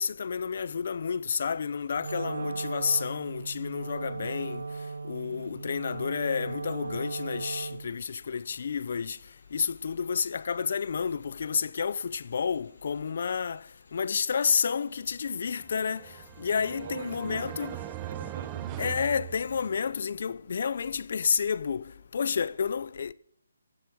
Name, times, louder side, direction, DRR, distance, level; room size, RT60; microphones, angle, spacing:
voice 1, 0.0-4.6 5.0-9.2 9.5-13.6 13.9-16.1 16.4-17.7 18.8-23.1, left 6 dB, 40° left, 0.5 m, -30 dB
sound 1, 2.0-19.7 20.1-20.2, left 3 dB, 65° left, 6.7 m, -63 dB
Wind instrument woodwind instrument, 2.0-8.0, right 4 dB, 80° right, 0.5 m, -37 dB
voice 2, 2.2-2.7 5.1-5.6 16.6-18.9, right 5 dB, 40° right, 0.9 m, -44 dB
sound 2, 15.6-20.0, right 12 dB, 10° right, 0.5 m, -40 dB
15.5 x 7.8 x 6.3 m
hypercardioid pair, 175°, 0 cm